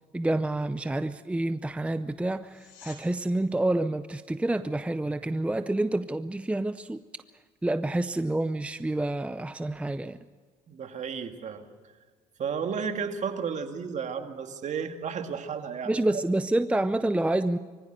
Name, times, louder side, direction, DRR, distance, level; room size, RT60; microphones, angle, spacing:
voice 1, 0.1-7.0 7.6-10.2 15.9-17.6, right 1 dB, 10° right, 12 dB, 0.6 m, -28 dB
sound 1, 2.4-3.0 14.4-14.5, left 7 dB, 85° left, 5.0 m, -50 dB
voice 2, 10.7-11.7 12.4-16.0, right 6 dB, 50° right, 6 dB, 2.1 m, -33 dB
23.5 x 15.0 x 8.1 m, 1.5 s
cardioid pair, 85°, 16 cm